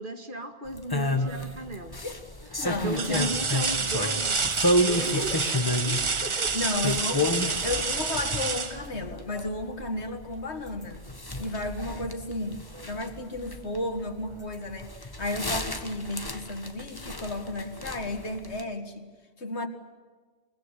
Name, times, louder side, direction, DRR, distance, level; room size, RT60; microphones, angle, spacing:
voice 1, 0.0-2.0 2.6-4.4 4.7-5.5 5.8-6.6, right 1 dB, 50° right, 6 dB, 2.3 m, -35 dB
sound 1, 0.7-18.6, left 1 dB, 20° left, 1.4 m, -32 dB
sound 2, 1.2-1.6 2.2-2.3 2.9-9.6 11.4-11.5 12.0-13.0 14.3-14.4, right 4 dB, 30° right, 0.8 m, -29 dB
voice 2, 2.6-3.4 5.0-5.4 6.1-11.0 11.4-19.1 19.4-19.7, left 2 dB, 80° left, 5 dB, 2.3 m, -33 dB
23.5 x 21.5 x 9.9 m, 1.4 s
omnidirectional pair, 1.1 m